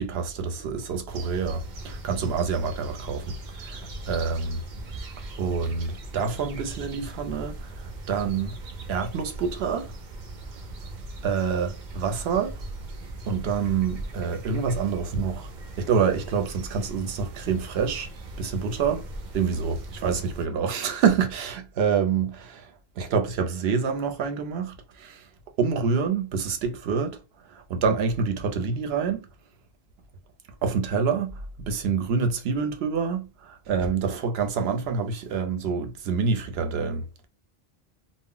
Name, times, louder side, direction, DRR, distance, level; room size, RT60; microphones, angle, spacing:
voice 1, 0.0-4.6 5.4-8.5 8.9-9.9 11.2-12.5 13.3-15.5 15.8-18.1 18.4-19.0 19.3-25.3 25.6-27.2 27.4-29.3 30.6-37.2, right 6 dB, 85° right, 0.8 m, -27 dB
sound 1, 1.1-20.5, right 2 dB, 55° right, 0.6 m, -39 dB
2.0 x 2.0 x 3.7 m
omnidirectional pair, 1.0 m